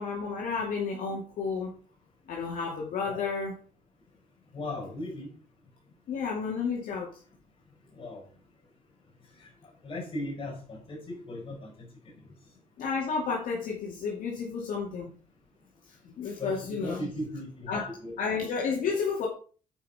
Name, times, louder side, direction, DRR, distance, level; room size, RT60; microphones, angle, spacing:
voice 1, 0.0-1.7 2.3-3.5 6.1-7.1 12.8-15.1 16.2-17.1 17.7-17.9 18.2-19.3, left 5 dB, 70° left, 2.4 m, -31 dB
voice 2, 4.5-5.3 8.0-8.2 9.8-11.7 16.4-18.1, left 1 dB, 40° left, 5.1 m, -37 dB
8.9 x 5.3 x 5.6 m
cardioid pair, 115°, 15 cm